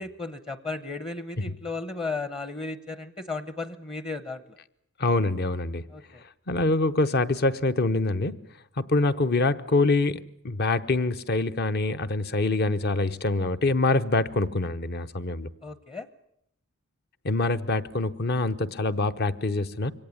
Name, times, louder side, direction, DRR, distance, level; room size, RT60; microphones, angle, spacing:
voice 1, 0.0-4.6 5.9-6.2 15.6-16.1, left 3 dB, 25° left, 0.9 m, -35 dB
voice 2, 5.0-5.8 6.5-8.4 8.8-15.5 17.2-19.9, left 2 dB, 50° left, 0.9 m, -25 dB
24.0 x 18.0 x 9.6 m
head